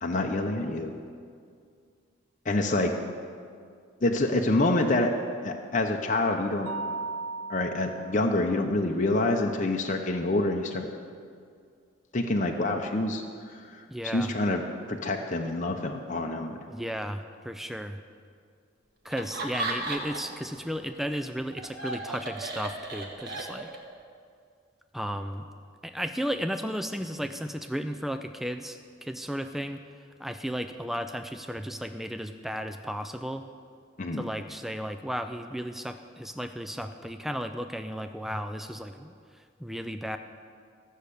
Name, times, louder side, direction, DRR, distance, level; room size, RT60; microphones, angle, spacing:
voice 1, 0.0-0.9 2.4-2.9 4.0-5.1 5.4-6.7 7.5-10.9 12.1-14.6 14.9-16.7 34.0-34.2, left 2 dB, 40° left, 2 dB, 0.7 m, -27 dB
Mallet percussion, 6.7-8.4, right 3 dB, 90° right, 0.5 m, -36 dB
voice 2, 13.9-14.3 16.7-18.0 19.0-23.7 24.9-25.5 25.8-29.8 30.2-33.4 34.1-40.2, equal, ahead, 8 dB, 0.3 m, -34 dB
Laughter, 19.1-20.4 20.7-23.9, right 2 dB, 50° right, 1.5 m, -35 dB
14.0 x 6.5 x 8.3 m, 2.2 s
head